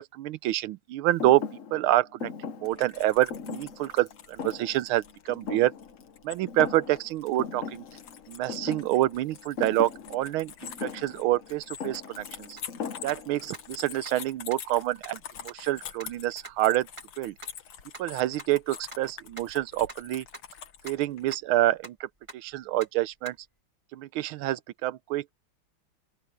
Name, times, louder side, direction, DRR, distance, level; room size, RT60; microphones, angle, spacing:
voice 1, 0.0-1.4 1.7-2.3 2.6-5.7 6.2-7.9 8.3-12.6 13.0-16.9 17.2-17.4 18.0-20.2 20.8-23.4 23.9-25.3, right 15 dB, 80° right, 1.4 m, -27 dB
Thump thud, 1.2-6.2 6.5-7.1 7.4-13.5, left 6 dB, 50° left, 1.1 m, -39 dB
sound 1, 2.6-21.4, left 8 dB, 80° left, 2.3 m, -46 dB
sound 2, 12.6-12.7 13.1-13.2 13.5-13.6 14.0-14.1 14.5-14.6 15.0-15.1 15.5-15.6 16.0-16.1 16.4-16.5 17.0-17.1 17.4-17.5 17.9-18.0 18.4-18.5 18.9-19.0 19.4-19.5 19.9-20.0 20.3-20.4 20.7-21.0 21.3-21.9 22.3-22.5 22.8-22.9 23.2-23.3, right 2 dB, 15° right, 2.6 m, -43 dB
open air
omnidirectional pair, 2.3 m